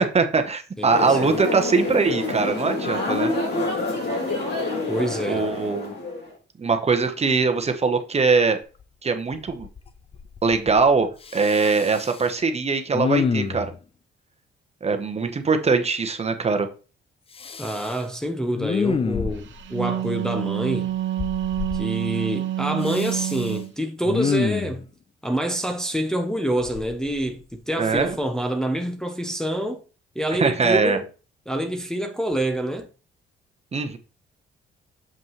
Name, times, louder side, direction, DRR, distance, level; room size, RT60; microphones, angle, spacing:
voice 1, 0.0-3.3 5.3-5.9 6.6-8.6 9.0-9.7 10.4-13.7 14.8-16.7 27.8-28.2 30.3-31.0 33.7-34.0, right 4 dB, 30° right, 1.1 m, -22 dB
voice 2, 0.8-1.2 4.9-5.5 17.6-20.9 21.7-24.9 25.2-29.8 30.1-31.1 31.5-32.9, right 1 dB, 5° left, 0.9 m, -27 dB
sound 1, 0.9-6.3, left 2 dB, 55° left, 3.3 m, -27 dB
Respiratory sounds, 8.8-8.9 9.3-9.9 10.1-10.9 11.2-12.3 12.9-13.7 17.3-18.0 18.5-19.6 21.2-21.8 22.8-23.5 24.0-24.8 26.6-27.5 28.0-28.1, left 6 dB, 30° left, 0.5 m, -27 dB
Wind instrument woodwind instrument, 19.5-23.7, right 13 dB, 70° right, 1.0 m, -27 dB
7.4 x 5.3 x 3.2 m
cardioid pair, 90°, 20 cm